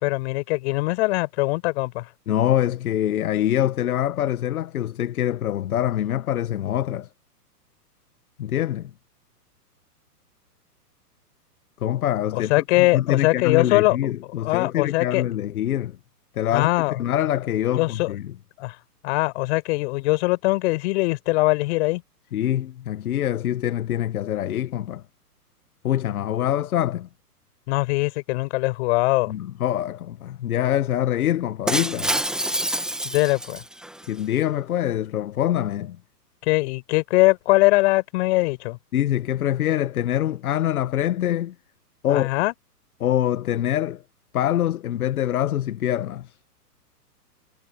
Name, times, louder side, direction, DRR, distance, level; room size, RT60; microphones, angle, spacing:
voice 1, 0.0-2.1 12.3-14.0 14.4-15.2 16.5-17.0 17.8-18.1 18.6-18.8 19.0-22.0 27.7-29.3 33.0-33.6 36.4-38.8 42.1-42.5, left 22 dB, 45° left, 5.3 m, -21 dB
voice 2, 2.3-7.1 8.4-8.9 11.8-16.0 16.3-18.3 22.3-25.0 25.8-27.1 29.3-32.1 34.1-36.0 38.9-41.5 42.0-42.3 43.0-44.0 44.3-46.3, left 11 dB, 65° left, 1.4 m, -24 dB
Shatter, 31.7-34.1, right 1 dB, ahead, 2.2 m, -27 dB
hypercardioid pair, 125°, 47 cm